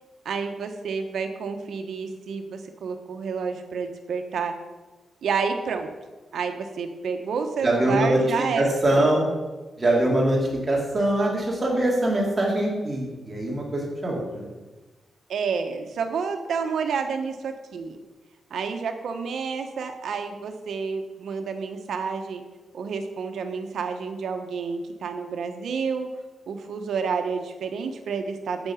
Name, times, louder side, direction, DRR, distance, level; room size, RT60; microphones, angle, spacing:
voice 1, 0.2-4.5 5.2-5.9 6.3-9.1 15.3-18.0 18.5-22.4 22.7-26.1 26.5-28.7, right 5 dB, 75° right, 6 dB, 1.2 m, -29 dB
voice 2, 7.6-9.3 9.8-10.4 10.7-14.5, right 1 dB, 20° right, -3 dB, 2.7 m, -23 dB
8.7 x 8.1 x 5.8 m, 1.2 s
wide cardioid pair, 155°, 0 cm